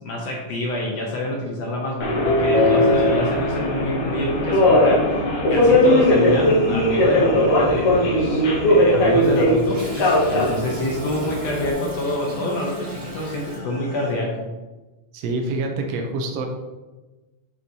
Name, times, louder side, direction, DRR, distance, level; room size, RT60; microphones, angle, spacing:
voice 1, 0.0-5.2 5.5-14.5, left 1 dB, 75° left, -2 dB, 1.5 m, -27 dB
Subway metro underground, 2.0-11.7, left 1 dB, 55° left, 1.6 m, -18 dB
voice 2, 2.6-2.9 15.1-16.5, right 2 dB, 80° right, 3 dB, 1.5 m, -26 dB
sound 1, 5.7-14.1, right 2 dB, 40° right, 1.9 m, -35 dB
Toilet flush, 8.3-13.6, equal, 60° right, 0.9 m, -37 dB
8.8 x 4.5 x 2.7 m, 1.2 s
omnidirectional pair, 3.9 m